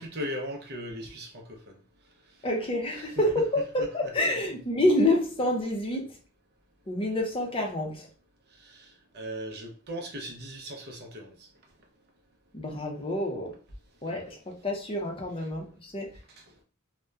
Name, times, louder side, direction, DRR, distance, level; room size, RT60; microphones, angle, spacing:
voice 1, 0.0-1.8 2.9-3.2 3.8-3.9 8.6-11.5, equal, 50° right, 0.6 m, -38 dB
voice 2, 2.4-6.1 6.9-8.1 12.5-13.5 14.0-14.4 14.6-16.1, left 1 dB, 25° left, 0.6 m, -27 dB
2.7 x 2.1 x 2.3 m
head